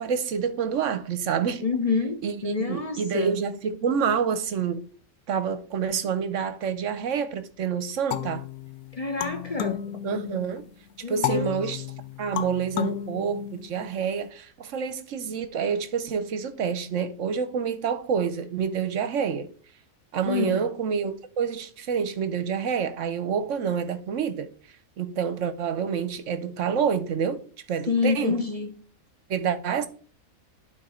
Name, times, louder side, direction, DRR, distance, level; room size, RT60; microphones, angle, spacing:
voice 1, 0.0-1.6 2.2-4.8 5.3-8.4 10.0-10.7 11.1-11.9 12.2-19.5 20.1-24.5 25.0-27.4 27.7-28.4 29.3-29.9, right 7 dB, 65° right, 1.0 m, -28 dB
voice 2, 1.6-3.3 8.9-9.8 11.0-11.5 20.3-20.6 27.9-28.7, left 4 dB, 30° left, 0.8 m, -27 dB
sound 1, 8.1-10.6 11.2-14.0, left 12 dB, 90° left, 1.1 m, -32 dB
11.5 x 4.1 x 4.3 m
omnidirectional pair, 1.5 m